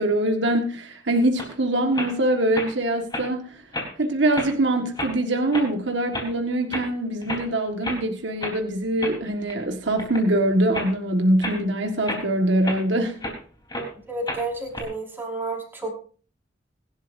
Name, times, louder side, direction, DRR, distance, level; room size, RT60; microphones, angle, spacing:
voice 1, 0.0-3.6 4.0-13.1, right 1 dB, 70° right, 3 dB, 1.7 m, -23 dB
sound 1, 1.4-1.5 1.9-2.1 2.5-2.7 3.1-3.3 3.7-4.0 4.3-4.5 4.9-5.1 5.5-5.7 6.1-6.3 6.7-6.9 7.2-7.5 7.8-8.0 8.4-8.6 9.0-9.6 10.0-10.3 10.7-10.9 11.4-11.6 12.0-13.4 13.7-13.9 14.3-14.8, left 1 dB, 20° left, 3.9 m, -31 dB
voice 2, 13.8-16.0, right 2 dB, 10° right, -2 dB, 5.1 m, -31 dB
24.5 x 12.0 x 2.7 m, 0.40 s
head